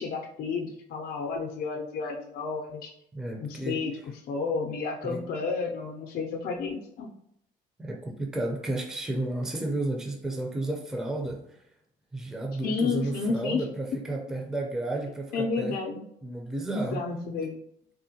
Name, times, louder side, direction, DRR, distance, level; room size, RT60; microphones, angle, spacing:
voice 1, 0.0-2.9 3.4-3.9 4.3-7.1 12.6-13.6 15.3-16.0 16.7-17.6, left 4 dB, 60° left, 1 dB, 0.5 m, -31 dB
voice 2, 3.1-3.8 5.0-5.2 7.8-11.6 12.1-15.8 16.2-17.0, right 2 dB, 5° right, 1 dB, 0.4 m, -32 dB
3.6 x 2.1 x 2.7 m, 0.73 s
cardioid pair, 110°, 17 cm